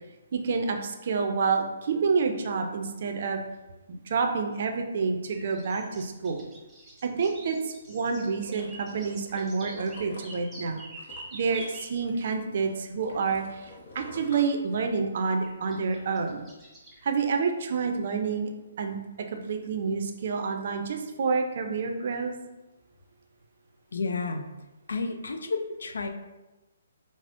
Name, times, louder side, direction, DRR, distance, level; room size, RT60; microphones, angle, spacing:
voice 1, 0.3-3.4 3.9-6.4 7.0-10.8 11.3-16.4 17.0-18.5 18.8-22.3, right 5 dB, 55° right, 4 dB, 0.4 m, -28 dB
sound 1, 5.3-11.9 13.6-13.7 15.4-17.1, right 2 dB, 5° right, 0.9 m, -47 dB
sound 2, 8.2-12.3 12.6-15.2 15.6-15.7, left 2 dB, 55° left, 0.8 m, -47 dB
voice 2, 23.9-24.5 24.9-26.1, left 4 dB, 75° left, 6 dB, 0.4 m, -31 dB
4.9 x 2.0 x 2.5 m, 1.1 s
hypercardioid pair, 145°, 0 cm